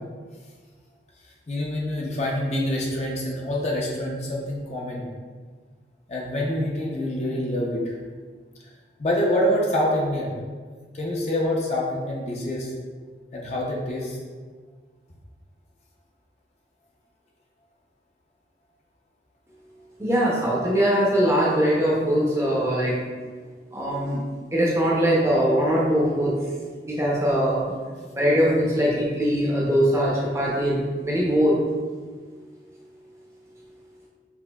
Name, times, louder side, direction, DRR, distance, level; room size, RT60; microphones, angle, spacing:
voice 1, 1.5-5.1 6.1-7.9 9.0-10.3 10.9-12.7 13.3-14.2, left 1 dB, 40° left, -3 dB, 0.6 m, -26 dB
voice 2, 20.0-23.0 23.7-24.2 24.5-26.3 26.9-27.7 28.2-31.5, equal, 15° right, -5 dB, 0.6 m, -21 dB
5.9 x 2.6 x 2.3 m, 1.5 s
head